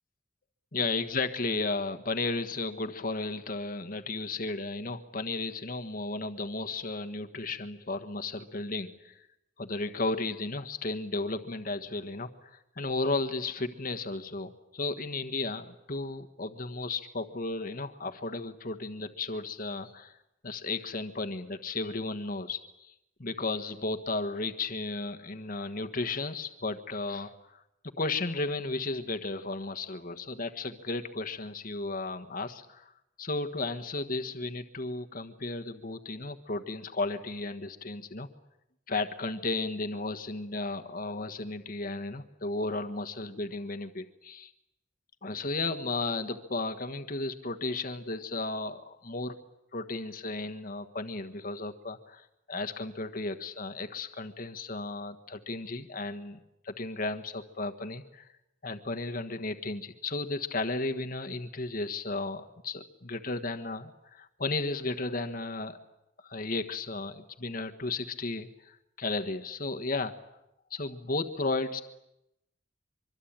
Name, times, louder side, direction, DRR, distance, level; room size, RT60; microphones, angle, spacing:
voice 1, 0.7-9.3 9.6-20.2 20.4-22.9 23.2-27.6 28.0-32.9 33.2-38.3 38.9-44.5 45.2-49.4 49.7-58.3 58.6-65.8 66.2-70.1 70.7-71.8, left 3 dB, 50° left, 7 dB, 1.4 m, -34 dB
24.5 x 24.0 x 8.9 m, 0.86 s
head